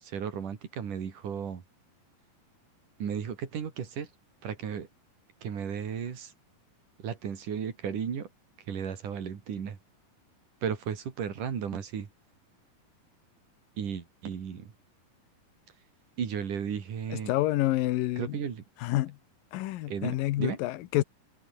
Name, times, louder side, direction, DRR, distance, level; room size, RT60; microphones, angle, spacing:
voice 1, 0.0-1.6 3.0-4.1 4.4-4.9 5.4-6.3 7.0-8.3 8.7-9.8 10.6-12.1 13.8-14.7 16.2-17.3 18.2-18.6 19.9-20.6, right 7 dB, 65° right, 4.3 m, -34 dB
voice 2, 17.1-18.4 18.8-19.2 19.5-21.0, left 16 dB, 90° left, 2.6 m, -28 dB
omnidirectional pair, 3.9 m